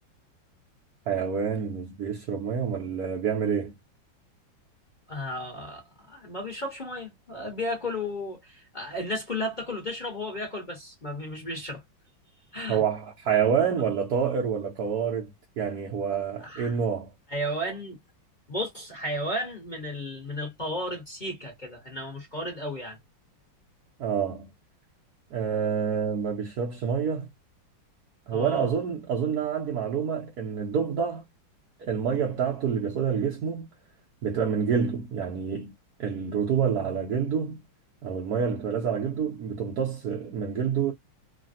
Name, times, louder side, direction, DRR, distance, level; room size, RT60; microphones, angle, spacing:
voice 1, 1.1-3.7 12.7-17.1 24.0-24.5 25.3-27.3 28.3-31.2 31.8-33.7 34.2-35.7 36.0-37.6 38.0-40.9, right 7 dB, 65° right, 1.0 m, -27 dB
voice 2, 5.1-11.8 12.5-12.8 16.4-16.8 17.3-18.0 18.5-23.0 28.3-28.7, left 1 dB, 30° left, 1.1 m, -34 dB
3.2 x 2.4 x 2.6 m
omnidirectional pair, 2.2 m